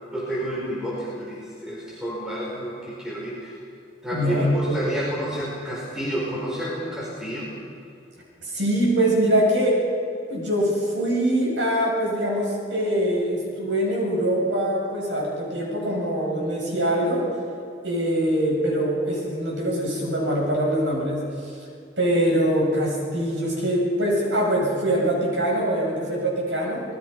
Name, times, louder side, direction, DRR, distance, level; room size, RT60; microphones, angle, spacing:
voice 1, 0.1-3.5 4.0-7.5, equal, 5° right, -6 dB, 4.9 m, -30 dB
voice 2, 4.1-4.8 8.4-9.8 10.2-17.3 17.8-21.6 22.0-26.8, right 1 dB, 85° right, -2 dB, 7.7 m, -23 dB
27.5 x 20.5 x 5.6 m, 2.5 s
head